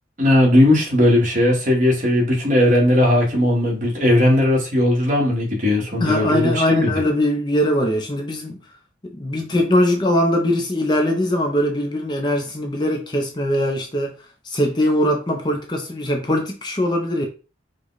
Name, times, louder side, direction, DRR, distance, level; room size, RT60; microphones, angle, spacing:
voice 1, 0.2-6.9, left 1 dB, 40° right, 1.6 m, -17 dB
voice 2, 6.0-8.6 9.0-14.2 14.4-17.3, left 1 dB, 25° left, 0.6 m, -21 dB
4.9 x 2.3 x 4.0 m
head